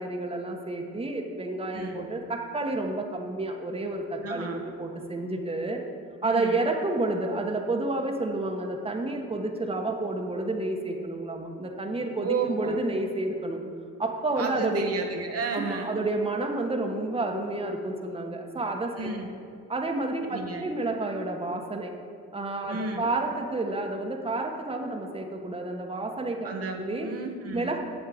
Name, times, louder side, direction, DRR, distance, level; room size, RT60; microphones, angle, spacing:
voice 1, 0.0-5.8 6.2-13.6 14.0-14.8 15.5-19.3 19.7-21.9 22.3-27.1 27.5-27.8, right 2 dB, 20° right, 2 dB, 1.4 m, -30 dB
voice 2, 4.2-4.6 6.2-6.6 12.2-12.8 14.4-16.0 19.0-19.3 20.3-20.7 22.7-23.1 26.4-27.8, right 4 dB, 50° right, 2 dB, 1.3 m, -33 dB
8.8 x 7.7 x 7.8 m, 2.3 s
cardioid pair, 90°, 30 cm